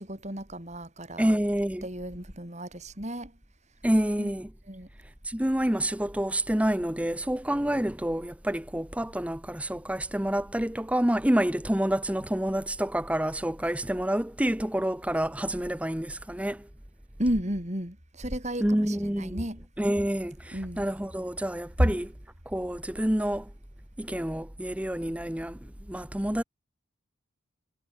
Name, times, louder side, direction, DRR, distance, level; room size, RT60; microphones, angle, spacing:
voice 1, 0.0-1.3 1.8-3.4 4.2-4.3 4.7-4.9 17.2-19.7 20.5-20.8 21.8-22.0, equal, 35° right, 5.7 m, -32 dB
voice 2, 1.2-1.9 3.8-4.5 5.2-16.7 18.6-19.4 19.8-22.1 22.5-23.5 24.0-25.6 25.9-26.4, right 1 dB, 5° right, 0.7 m, -28 dB
head